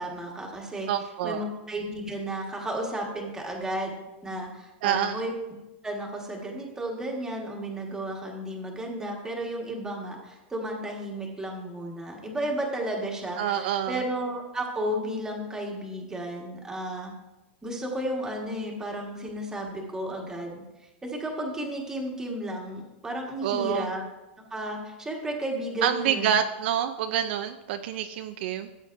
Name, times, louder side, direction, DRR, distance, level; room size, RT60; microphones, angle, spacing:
voice 1, 0.0-0.9 1.2-4.0 4.2-5.3 5.8-17.1 17.6-20.6 21.0-24.0 24.5-26.3, right 1 dB, 10° right, 0 dB, 1.5 m, -33 dB
voice 2, 0.9-1.5 4.8-5.2 13.4-14.0 23.4-23.9 25.8-28.7, right 9 dB, 60° right, 8 dB, 0.4 m, -27 dB
14.0 x 8.2 x 2.6 m, 1.0 s
supercardioid pair, 150°, 6 cm